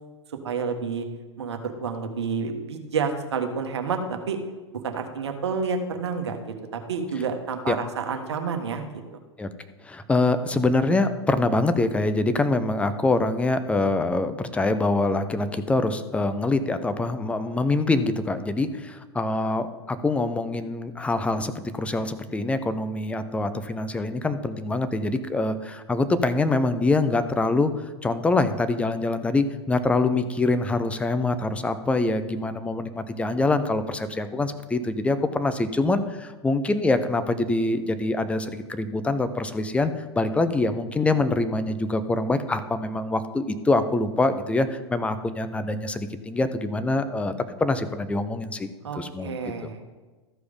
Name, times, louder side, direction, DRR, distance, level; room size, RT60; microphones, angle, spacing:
voice 1, 0.4-1.1 1.4-4.4 4.7-6.4 6.7-8.9 48.8-49.8, right 5 dB, 65° right, 5 dB, 1.3 m, -29 dB
voice 2, 9.8-27.7 28.0-47.3 47.6-49.3, left 2 dB, 10° left, 10 dB, 0.6 m, -25 dB
13.5 x 4.9 x 5.3 m, 1.3 s
figure-of-eight pair, 95°, 15 cm